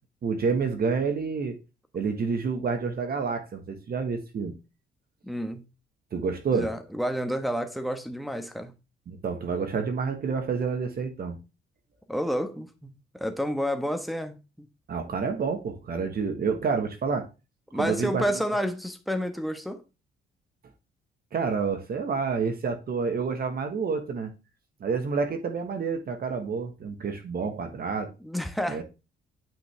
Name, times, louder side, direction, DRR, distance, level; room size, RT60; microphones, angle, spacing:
voice 1, 0.2-1.6 1.9-4.5 6.1-6.7 9.1-11.4 14.9-17.3 17.7-18.2 21.3-24.3 24.8-28.1 28.7-28.8, right 5 dB, 50° right, 1.5 m, -28 dB
voice 2, 5.2-5.6 6.5-8.7 12.1-14.7 17.7-19.8 28.2-28.8, equal, ahead, 1.3 m, -30 dB
9.3 x 5.3 x 3.4 m
cardioid pair, 90°, 20 cm